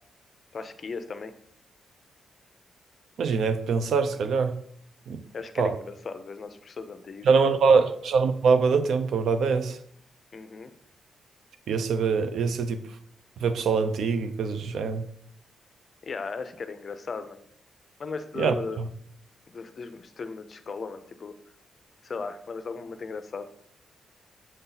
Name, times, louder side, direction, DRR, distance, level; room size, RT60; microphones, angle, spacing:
voice 1, 0.5-1.3 5.3-7.6 10.3-10.7 16.0-17.4 18.0-18.8 19.5-21.4 22.0-23.5, left 4 dB, 40° left, 10 dB, 0.6 m, -37 dB
voice 2, 3.2-4.6 5.1-5.2 5.6-5.7 7.2-9.8 11.7-12.8 13.4-15.0 18.4-18.5, right 5 dB, 75° right, 10 dB, 0.6 m, -23 dB
7.8 x 4.2 x 4.0 m, 0.67 s
wide cardioid pair, 135°, 0 cm